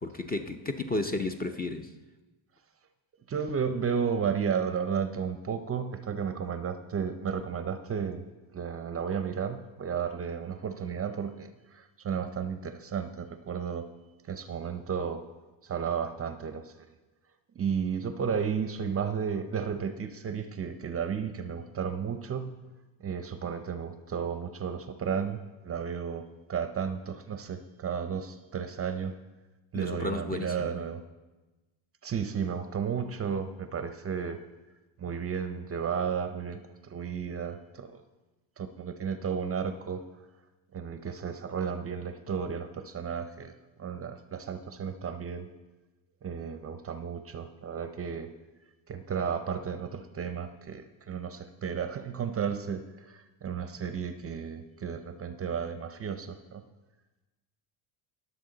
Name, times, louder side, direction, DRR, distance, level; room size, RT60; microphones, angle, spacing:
voice 1, 0.0-1.9 29.7-30.8, left 2 dB, 20° left, 0.5 m, -33 dB
voice 2, 3.3-8.3 8.5-13.9 14.3-15.2 15.6-16.7 17.5-22.6 23.0-29.2 29.7-31.0 32.0-34.4 35.0-38.0 38.6-40.0 40.7-45.5 46.2-48.3 48.9-56.6, right 7 dB, 30° right, 0.6 m, -33 dB
20.0 x 7.1 x 3.9 m
cardioid pair, 130°, 48 cm